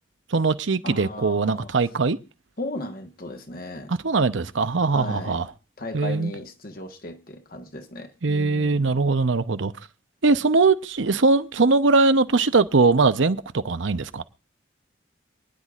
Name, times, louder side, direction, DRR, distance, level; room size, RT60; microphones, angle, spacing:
voice 1, 0.3-2.2 3.9-5.5 5.9-6.3 8.2-9.7 10.2-14.2, right 3 dB, 75° right, 0.8 m, -21 dB
voice 2, 0.8-1.7 2.6-3.9 4.9-5.5 5.8-8.9, left 2 dB, 45° left, 1.3 m, -36 dB
27.5 x 10.0 x 2.5 m
head